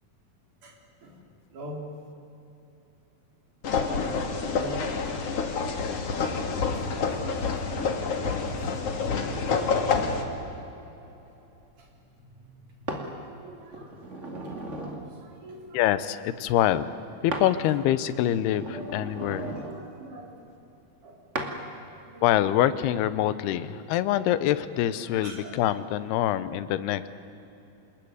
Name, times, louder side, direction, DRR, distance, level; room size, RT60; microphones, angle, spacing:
sound 1, 3.6-10.2, left 5 dB, 45° left, 2.5 m, -28 dB
voice 1, 4.5-4.9 13.3-13.9 15.2-15.8 18.7-18.9 19.3-20.3 21.0-21.2 22.1-22.3 25.2-25.6, right 2 dB, 50° right, 0 dB, 5.2 m, -42 dB
sound 2, 12.9-13.1 13.7-15.1 17.3-17.5 18.0-19.8 21.4-21.6 22.3-22.5, right 2 dB, 25° right, 2.0 m, -36 dB
voice 2, 15.7-16.9 17.2-19.6 22.2-27.1, left 12 dB, 85° left, 14 dB, 2.9 m, -25 dB
27.5 x 20.5 x 9.7 m, 3.0 s
omnidirectional pair, 4.5 m